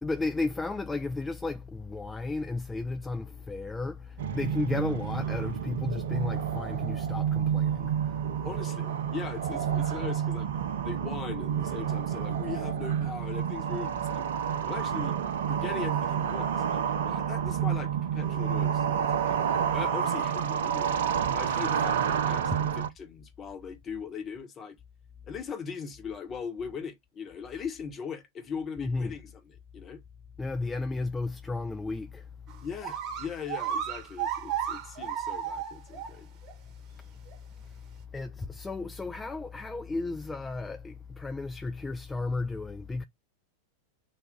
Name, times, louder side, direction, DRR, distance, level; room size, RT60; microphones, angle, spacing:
voice 1, 0.0-8.6 22.5-22.6 28.8-29.2 30.4-32.3 36.9-37.1 37.6-37.8 38.1-43.0, left 3 dB, 10° left, 0.4 m, -34 dB
sound 1, 4.2-22.9, right 8 dB, 60° right, 0.5 m, -29 dB
voice 2, 8.4-10.5 10.8-14.2 14.7-15.2 15.5-19.4 19.7-21.0 21.3-24.8 25.3-30.0 32.6-36.3, left 6 dB, 25° left, 1.1 m, -40 dB
sound 2, 32.5-32.6 32.8-36.1 36.5-36.6 37.3-37.4, right 9 dB, 35° right, 1.1 m, -33 dB
3.9 x 2.3 x 3.6 m
figure-of-eight pair, 90°, 0 cm